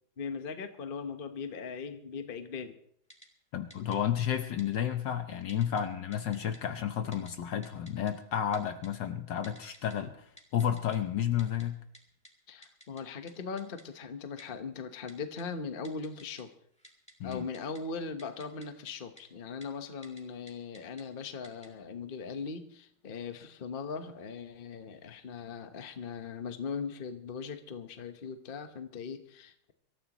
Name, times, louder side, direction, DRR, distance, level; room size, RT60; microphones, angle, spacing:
voice 1, 0.2-2.8 12.5-16.5 17.2-29.7, left 5 dB, 35° left, 7 dB, 1.0 m, -39 dB
Typing, 3.1-3.3 3.7-4.0 4.6-4.7 5.5-5.8 6.1-6.6 7.1-7.3 7.6-8.1 8.5-8.9 9.4-9.9 10.4-11.0 11.4-11.6 11.9-12.0 12.2-12.3 12.6-13.0 13.3-13.4 13.6-13.8 14.4-14.5 15.1-15.4 15.8-16.4 16.7-17.8 18.2-18.9 19.2-19.3 19.6-19.7 20.0-20.2 20.5-21.0 21.4-21.7, equal, 5° left, 2.2 m, -53 dB
voice 2, 3.5-11.8 17.2-17.4, left 9 dB, 65° left, 8 dB, 1.4 m, -32 dB
25.0 x 13.5 x 3.0 m, 0.68 s
omnidirectional pair, 2.3 m